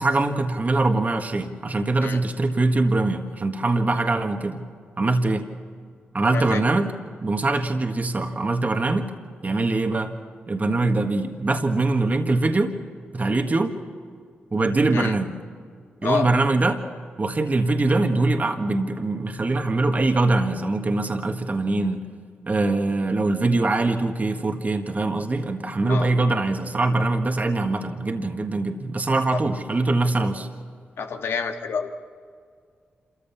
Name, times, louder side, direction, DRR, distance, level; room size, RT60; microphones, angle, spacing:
voice 1, 0.0-4.6 5.0-5.5 6.1-6.9 7.2-9.1 9.4-10.1 10.5-12.7 13.1-13.7 14.5-15.3 16.0-16.8 17.2-22.0 22.5-30.5, right 2 dB, 40° right, 5 dB, 1.7 m, -23 dB
voice 2, 6.3-6.6 14.9-15.1 16.0-16.3 25.9-26.1 29.3-29.4 31.0-31.9, left 5 dB, 80° left, 5 dB, 1.6 m, -28 dB
27.0 x 14.5 x 7.2 m, 2.1 s
cardioid pair, 50°, 4 cm